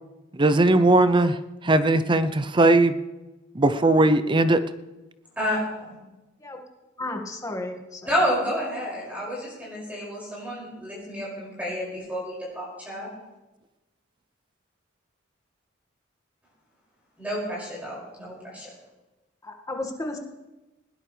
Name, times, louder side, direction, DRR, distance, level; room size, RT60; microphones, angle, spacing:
voice 1, 0.3-1.4 1.6-3.0 3.5-4.6, right 2 dB, 25° right, 12 dB, 0.6 m, -19 dB
voice 2, 5.4-6.0 8.0-13.1 17.2-18.7, equal, 10° right, -7 dB, 6.0 m, -30 dB
voice 3, 7.0-8.1 19.4-20.2, left 2 dB, 15° left, 3 dB, 1.9 m, -33 dB
20.0 x 17.0 x 3.3 m, 1.1 s
head